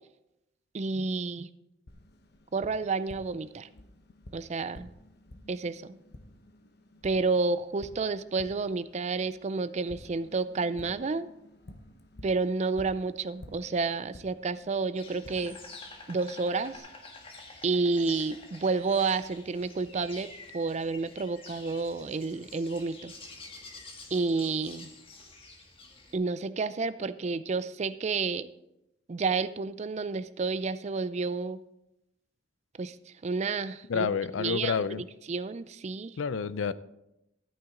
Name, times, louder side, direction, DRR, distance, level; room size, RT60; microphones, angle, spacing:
voice 1, 0.7-1.5 2.5-3.7 4.3-4.9 5.5-6.0 7.0-11.3 12.2-15.6 16.1-16.9 17.6-23.1 24.1-24.9 26.1-28.5 29.1-31.6 32.8-33.0 33.2-34.1 34.4-36.2, right 4 dB, 35° right, 15 dB, 0.4 m, -30 dB
Tap, 1.9-16.8, left 1 dB, 55° left, 1.0 m, -52 dB
Insect, 14.9-26.1, left 3 dB, 30° left, 1.5 m, -48 dB
voice 2, 33.9-35.0 36.2-36.7, left 6 dB, 85° left, 16 dB, 0.5 m, -29 dB
13.5 x 8.9 x 3.8 m, 0.87 s
head